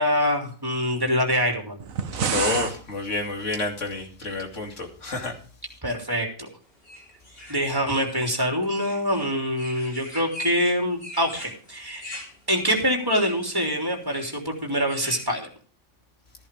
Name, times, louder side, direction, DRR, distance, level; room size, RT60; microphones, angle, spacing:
voice 1, 0.0-1.8 5.8-6.5 7.5-12.1 12.5-15.5, equal, 15° right, 1 dB, 3.3 m, -25 dB
sound 1, 1.8-2.8, right 7 dB, 80° right, 1.4 m, -27 dB
voice 2, 2.3-5.3, left 3 dB, 65° left, 3 dB, 2.9 m, -29 dB
sound 2, 6.8-15.2, left 1 dB, 45° left, 4.2 m, -42 dB
15.0 x 11.0 x 3.5 m, 0.41 s
omnidirectional pair, 1.4 m